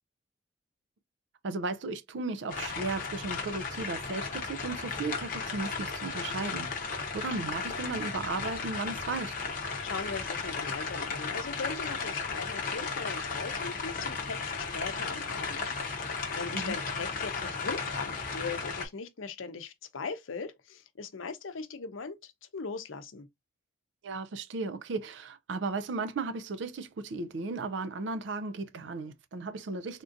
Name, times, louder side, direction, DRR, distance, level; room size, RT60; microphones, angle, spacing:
voice 1, 1.4-9.3 16.5-16.7 24.0-30.0, right 3 dB, 65° right, 0.4 m, -35 dB
sound 1, 2.5-18.9, left 4 dB, 45° left, 0.7 m, -35 dB
voice 2, 9.8-15.6 15.9-23.3, left 4 dB, 90° left, 0.6 m, -39 dB
3.6 x 2.5 x 2.5 m
head